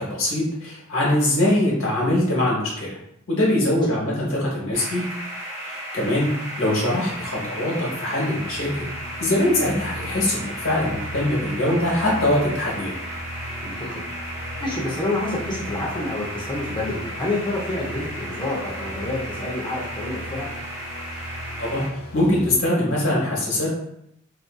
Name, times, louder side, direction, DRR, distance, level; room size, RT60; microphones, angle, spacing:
voice 1, 0.0-2.9 3.3-5.0 5.6-6.3 6.6-8.9 9.2-12.9 21.6-21.8 22.1-23.7, left 1 dB, 65° left, -4 dB, 1.0 m, -22 dB
sound 1, 4.7-21.9, right 1 dB, 10° right, 0.7 m, -35 dB
sound 2, 8.4-22.6, equal, 90° left, 0.5 m, -38 dB
voice 2, 13.6-20.5, left 2 dB, 20° left, -4 dB, 0.6 m, -28 dB
2.5 x 2.4 x 2.3 m, 0.77 s
head